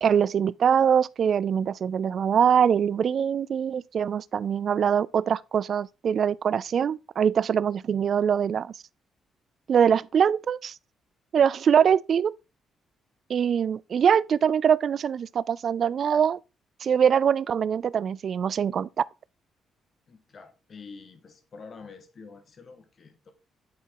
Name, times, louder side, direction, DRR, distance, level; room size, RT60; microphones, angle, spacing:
voice 1, 0.0-8.7 9.7-10.7 11.3-12.3 13.3-16.4 16.8-18.9, right 8 dB, 55° right, 0.3 m, -23 dB
voice 2, 20.1-23.3, left 4 dB, 45° left, 1.6 m, -47 dB
9.7 x 4.1 x 3.8 m
cardioid pair, 90°, 0 cm